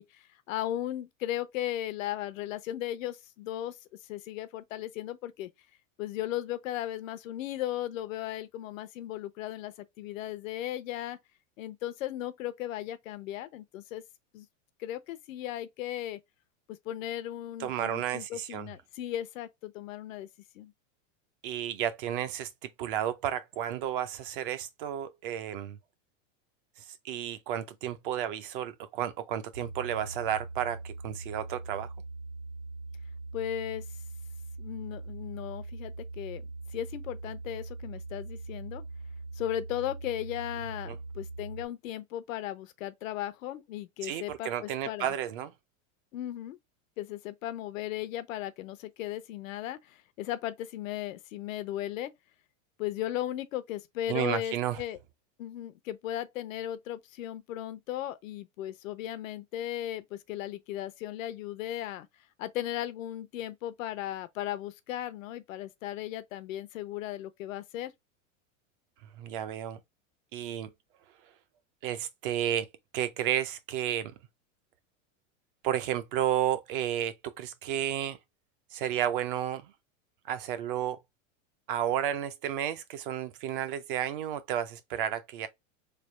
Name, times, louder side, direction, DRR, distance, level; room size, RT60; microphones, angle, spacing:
voice 1, 0.0-3.8 4.1-5.5 6.0-11.2 11.6-14.0 14.3-14.5 14.8-16.2 16.8-20.3 20.5-20.7 33.3-33.9 34.6-36.4 36.7-38.8 39.3-45.1 46.1-46.6 47.0-52.1 52.8-55.0 55.4-62.1 62.4-67.9, left 12 dB, 80° left, 0.7 m, -36 dB
voice 2, 17.6-18.7 21.4-25.8 27.0-31.9 40.9-41.0 44.0-45.5 54.1-54.8 69.2-69.8 70.3-70.7 71.8-72.7 72.9-74.1 75.6-78.2 78.7-79.7 80.3-81.0 81.7-85.5, right 10 dB, 45° right, 0.5 m, -32 dB
sound 1, 29.5-41.7, right 3 dB, 90° right, 1.6 m, -41 dB
3.3 x 2.1 x 4.2 m
supercardioid pair, 160°, 39 cm